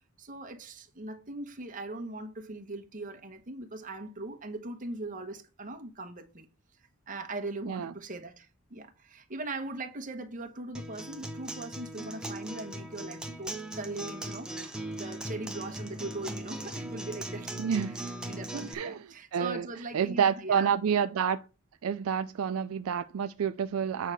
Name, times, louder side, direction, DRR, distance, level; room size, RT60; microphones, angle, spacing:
voice 1, 0.2-6.5 6.8-17.6 17.9-20.8, right 2 dB, 35° right, 1.1 m, -40 dB
Acoustic guitar, 10.7-18.7, right 1 dB, 5° right, 0.9 m, -39 dB
voice 2, 17.6-18.0 18.5-19.0 19.3-19.7 19.9-21.4 21.8-24.1, right 7 dB, 70° right, 0.4 m, -29 dB
8.3 x 3.3 x 6.2 m
head